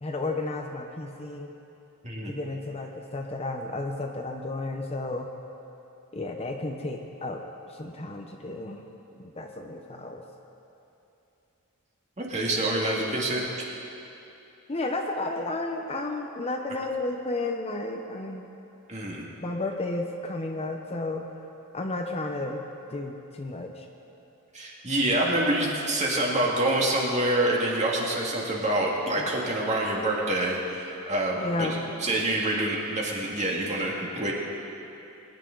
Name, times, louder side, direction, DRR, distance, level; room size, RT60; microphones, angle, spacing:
voice 1, 0.0-1.5 2.3-5.3 6.1-8.9 9.2-10.2 14.7-18.5 19.4-21.2 21.7-22.6 22.9-23.9 31.4-31.9, left 2 dB, 30° left, 3 dB, 0.7 m, -32 dB
voice 2, 2.0-2.4 12.2-13.5 18.9-19.2 24.5-31.7 32.0-34.3, right 1 dB, 35° right, -3 dB, 2.0 m, -26 dB
21.5 x 10.5 x 3.9 m, 2.9 s
head